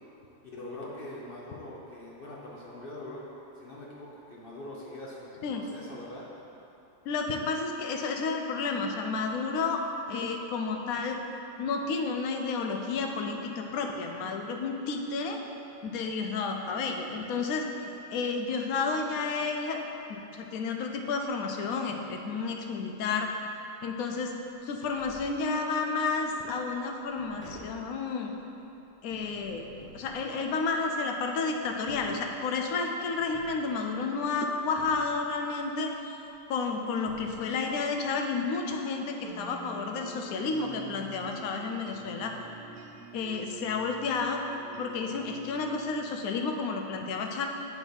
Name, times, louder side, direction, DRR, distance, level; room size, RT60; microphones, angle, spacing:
voice 1, 0.4-3.3 3.6-6.3 30.3-30.4, left 1 dB, 45° left, -5 dB, 0.9 m, -43 dB
voice 2, 7.1-11.2 11.6-15.4 15.8-17.6 18.1-23.4 23.8-24.3 24.6-28.3 29.0-29.7 29.9-35.9 36.5-42.3 43.1-44.4 44.8-47.5, left 4 dB, 80° left, 3 dB, 1.1 m, -31 dB
Tap, 24.9-25.9 26.4-31.1 31.7-32.8 33.3-34.3 34.8-35.6 36.6-36.7 37.1-37.9 38.2-38.3, equal, 10° left, 0.9 m, -52 dB
sound 1, 39.2-46.8, right 5 dB, 85° right, 1.2 m, -47 dB
7.0 x 4.1 x 5.2 m, 2.9 s
omnidirectional pair, 1.5 m